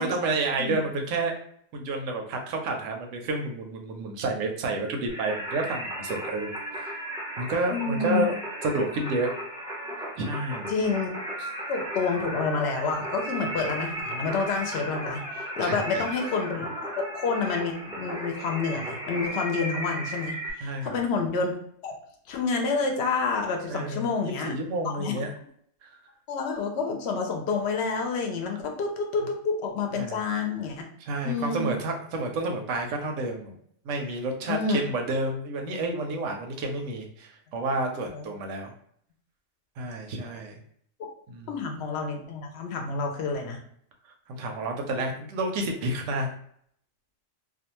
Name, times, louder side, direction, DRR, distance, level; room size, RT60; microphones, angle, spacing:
voice 1, 0.0-1.3 1.7-6.9 7.4-8.3 8.6-9.3 10.2-10.7 15.6-16.0 20.6-21.0 23.7-25.3 25.8-25.9 29.9-30.2 31.0-33.6 33.8-38.7 39.8-40.6 41.3-41.6 44.3-46.3, right 2 dB, 85° right, 3 dB, 0.9 m, -30 dB
Singing, 5.1-20.5, equal, 5° right, 0.3 m, -35 dB
voice 2, 7.7-8.3 10.7-11.1 11.7-16.7 17.0-21.6 21.8-21.9 22.3-24.5 24.8-25.2 26.3-30.9 31.2-31.7 34.5-34.8 38.1-38.3 41.5-43.6, left 4 dB, 65° left, 3 dB, 0.8 m, -28 dB
2.5 x 2.3 x 2.9 m, 0.65 s
omnidirectional pair, 1.3 m